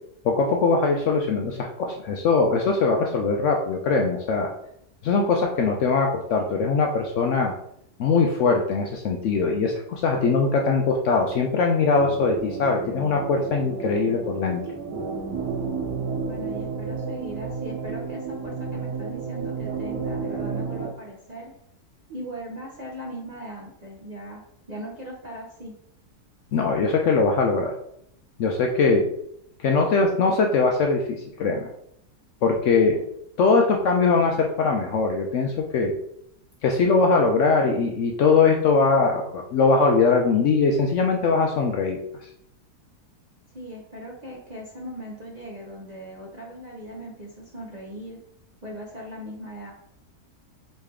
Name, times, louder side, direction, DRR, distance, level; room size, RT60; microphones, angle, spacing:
voice 1, 0.2-4.5 5.0-7.5 8.0-14.6 26.5-27.7 28.4-29.1 29.6-31.7 32.4-33.0 33.4-35.9 36.6-42.3, left 4 dB, 70° left, 1 dB, 0.7 m, -21 dB
sound 1, 12.0-20.9, right 5 dB, 80° right, 2.1 m, -31 dB
voice 2, 16.2-21.5 22.1-24.4 24.7-25.7 32.9-33.0 43.5-48.2 48.6-49.7, equal, 45° right, -5 dB, 0.5 m, -39 dB
4.0 x 3.3 x 3.5 m, 0.74 s
omnidirectional pair, 1.7 m